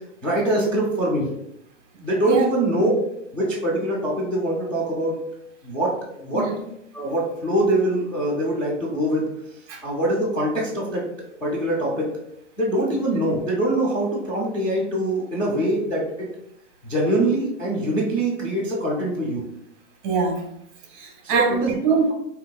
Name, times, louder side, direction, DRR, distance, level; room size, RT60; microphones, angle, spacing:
voice 1, 0.2-1.3 2.0-3.0 3.3-5.2 5.6-6.5 6.9-9.3 9.8-11.0 11.4-12.1 12.6-16.3 16.8-19.5 21.2-21.8, right 1 dB, 5° left, -8 dB, 0.4 m, -23 dB
voice 2, 20.0-20.4 20.9-22.1, right 5 dB, 35° right, 1 dB, 1.3 m, -23 dB
7.4 x 2.8 x 2.2 m, 0.77 s
hypercardioid pair, 155°, 37 cm